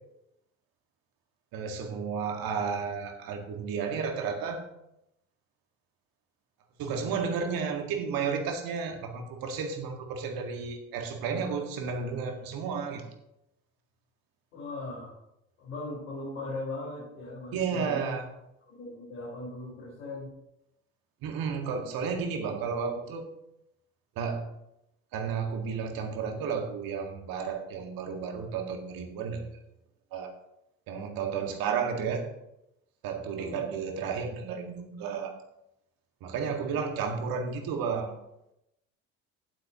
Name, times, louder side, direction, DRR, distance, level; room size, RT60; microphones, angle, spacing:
voice 1, 1.5-4.6 6.8-13.1 17.5-18.3 21.2-23.3 24.2-24.5 25.1-29.5 30.1-30.3 30.9-32.3 33.0-35.4 36.2-38.2, right 6 dB, 60° right, 4 dB, 2.0 m, -32 dB
voice 2, 14.5-15.1 15.6-18.1 18.7-20.3 33.3-33.6, left 2 dB, 80° left, -8 dB, 5.0 m, -39 dB
16.5 x 8.3 x 3.0 m, 0.84 s
hypercardioid pair, 60°, 40 cm